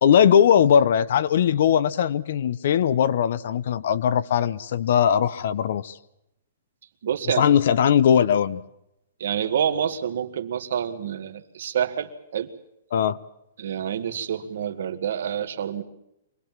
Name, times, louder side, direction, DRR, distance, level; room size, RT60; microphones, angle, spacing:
voice 1, 0.0-6.0 7.4-8.6 12.9-13.2, left 8 dB, 50° left, 17 dB, 0.8 m, -20 dB
voice 2, 7.0-7.5 9.2-12.5 13.6-15.8, right 8 dB, 55° right, 9 dB, 1.8 m, -27 dB
25.0 x 19.5 x 7.4 m, 0.84 s
hypercardioid pair, 175°, 0 cm